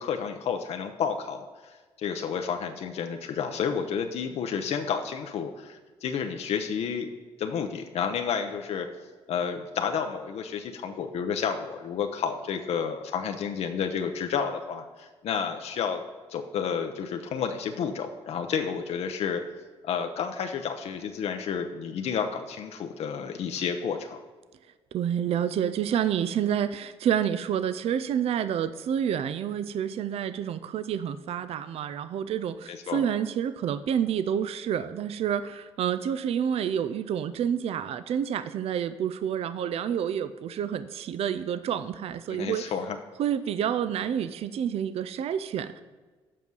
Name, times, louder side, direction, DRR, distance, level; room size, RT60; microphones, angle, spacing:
voice 1, 0.0-1.5 2.0-7.1 7.4-8.9 9.3-16.0 16.3-19.4 19.8-24.2 32.7-33.0 42.3-43.0, left 7 dB, 70° left, 5 dB, 0.7 m, -30 dB
voice 2, 24.9-42.6 43.2-45.8, right 9 dB, 65° right, 13 dB, 0.4 m, -28 dB
7.5 x 5.4 x 6.2 m, 1.4 s
cardioid pair, 95°, 11 cm